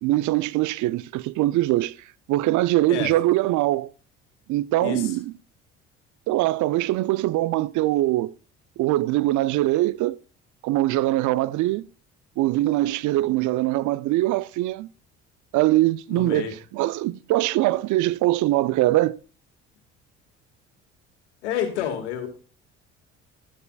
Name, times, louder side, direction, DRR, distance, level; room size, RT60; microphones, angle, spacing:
voice 1, 0.0-1.9 2.3-3.9 4.5-5.3 6.3-8.3 8.8-10.2 10.6-11.8 12.4-14.9 15.5-19.2, right 17 dB, 60° right, 0.5 m, -22 dB
voice 2, 4.8-5.2 16.1-16.5 21.4-22.3, left 9 dB, 85° left, 1.8 m, -29 dB
12.5 x 9.9 x 2.3 m
hypercardioid pair, 60°, 34 cm